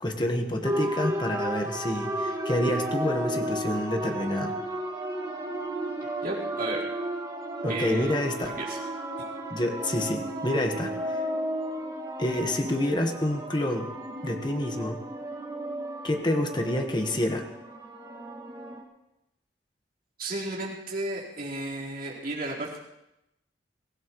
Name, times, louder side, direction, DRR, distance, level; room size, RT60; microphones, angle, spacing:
voice 1, 0.0-4.6 7.6-8.5 9.5-11.2 12.2-13.9 14.2-15.0 16.0-17.4, left 1 dB, 25° left, 4 dB, 1.4 m, -28 dB
sound 1, 0.6-18.8, right 1 dB, 20° right, 2.0 m, -34 dB
voice 2, 6.2-6.8 7.7-8.8 20.2-22.8, right 1 dB, 55° right, -5 dB, 4.3 m, -33 dB
23.5 x 16.5 x 3.1 m, 0.89 s
head